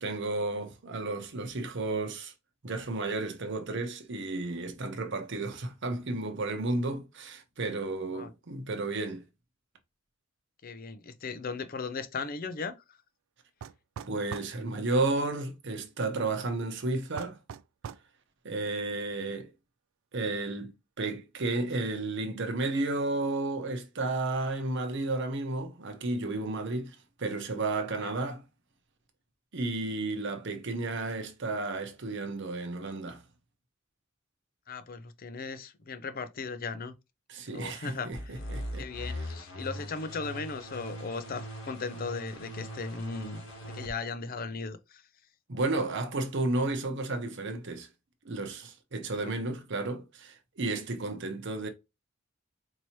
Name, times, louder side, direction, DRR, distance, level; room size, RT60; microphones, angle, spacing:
voice 1, 0.0-2.3 2.6-9.2 14.1-17.4 18.4-19.5 20.1-28.4 29.5-33.2 37.3-39.1 45.5-47.9 48.2-51.7, right 2 dB, 60° right, 0.8 m, -32 dB
voice 2, 10.6-12.8 27.9-28.1 34.7-36.9 37.5-38.1 38.8-45.0 49.2-49.3, left 4 dB, 45° left, 0.5 m, -37 dB
sound 1, 13.6-14.6 17.2-18.1, right 7 dB, 85° right, 0.3 m, -41 dB
sound 2, 38.1-43.9, equal, 80° left, 1.4 m, -40 dB
4.6 x 2.9 x 2.8 m
head